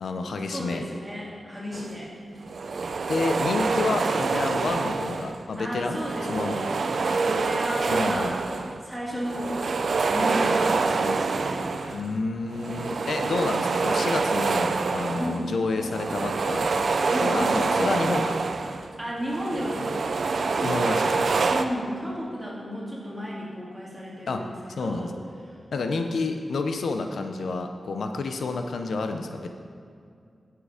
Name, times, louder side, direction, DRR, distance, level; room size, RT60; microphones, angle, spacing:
voice 1, 0.0-0.8 3.1-6.0 6.3-6.6 7.9-8.4 11.7-16.7 17.2-18.4 20.6-21.3 24.3-24.5 24.8-25.1 25.7-29.5, left 3 dB, 90° left, 5 dB, 0.7 m, -29 dB
voice 2, 0.5-2.1 5.6-6.8 7.2-8.4 8.8-9.8 10.1-11.7 15.1-15.5 17.1-17.5 19.0-21.0 21.5-24.5 24.8-25.1, equal, 10° right, -6 dB, 2.4 m, -33 dB
sound 1, 1.7-2.0 2.4-5.5 5.8-8.9 9.2-12.1 12.5-18.9 19.2-21.6, right 4 dB, 60° right, 0.5 m, -26 dB
10.0 x 7.7 x 5.0 m, 2.4 s
wide cardioid pair, 160°, 0 cm